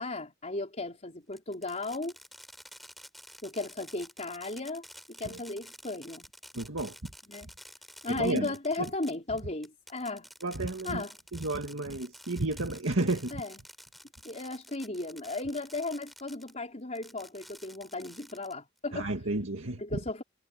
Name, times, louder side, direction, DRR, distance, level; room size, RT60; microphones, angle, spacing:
voice 1, 0.0-2.1 3.4-6.2 7.3-7.5 8.0-10.3 10.8-11.1 13.3-13.6 14.2-19.1 19.8-20.2, left 2 dB, 35° left, 4.6 m, -35 dB
Fireworks, 1.3-16.5 17.0-18.8, equal, ahead, 7.8 m, -51 dB
voice 2, 6.5-6.9 8.1-8.5 10.4-11.0 11.3-13.4 18.9-20.0, right 2 dB, 75° right, 2.1 m, -32 dB
head